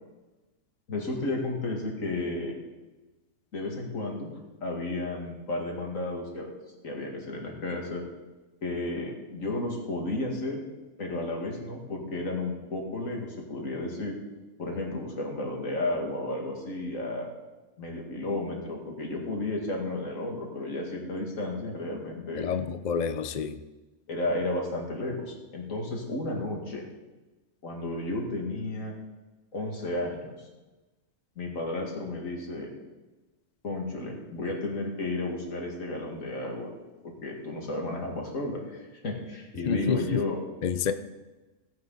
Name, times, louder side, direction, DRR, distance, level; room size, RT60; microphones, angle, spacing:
voice 1, 0.9-2.6 3.5-4.3 4.6-6.5 6.8-8.0 8.6-10.6 11.0-14.2 14.6-17.3 17.8-22.5 24.1-26.8 27.6-28.9 29.5-30.3 31.4-32.7 33.6-36.7 37.0-40.4, left 2 dB, 80° left, 2.6 m, -33 dB
voice 2, 22.4-23.6 39.7-40.2 40.6-40.9, left 7 dB, 45° left, 0.6 m, -28 dB
17.0 x 9.7 x 4.0 m
omnidirectional pair, 1.4 m